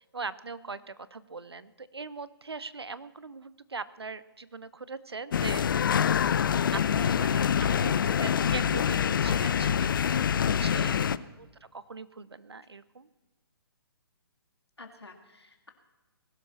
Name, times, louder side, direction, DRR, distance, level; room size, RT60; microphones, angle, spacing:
voice 1, 0.0-5.7 6.7-11.1 11.4-11.5 11.7-13.1, right 4 dB, 85° right, 17 dB, 0.8 m, -41 dB
sound 1, 5.3-11.2, left 8 dB, 55° left, 0.5 m, -25 dB
voice 2, 10.8-11.1 14.8-15.7, left 3 dB, 90° left, 4 dB, 2.0 m, -47 dB
20.5 x 12.0 x 4.3 m, 1.1 s
figure-of-eight pair, 135°, 13 cm